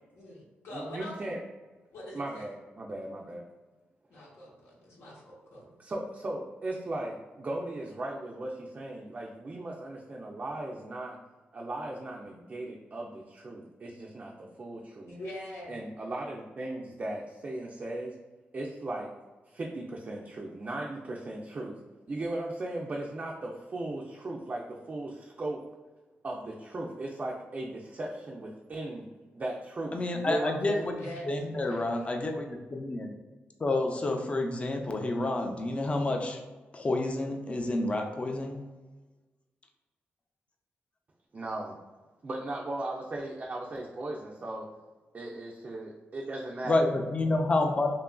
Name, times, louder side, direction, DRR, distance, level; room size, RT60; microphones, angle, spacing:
voice 1, 0.1-1.3 1.9-2.5 4.1-5.7 15.1-15.8 30.8-32.0, left 1 dB, 80° left, -5 dB, 0.8 m, -44 dB
voice 2, 0.7-1.4 2.1-3.4 5.8-11.2 11.5-15.1 15.7-18.1 18.5-19.1 19.5-21.7 22.1-24.6 24.9-25.6 26.2-29.1 29.3-30.9 41.3-41.8 42.2-44.7 45.1-46.9, right 2 dB, 40° right, -2 dB, 0.4 m, -37 dB
voice 3, 29.9-33.1 33.6-36.4 36.7-38.6 46.6-47.9, left 2 dB, 30° left, 3 dB, 0.4 m, -29 dB
2.8 x 2.4 x 2.2 m, 1.2 s
cardioid pair, 75°, 4 cm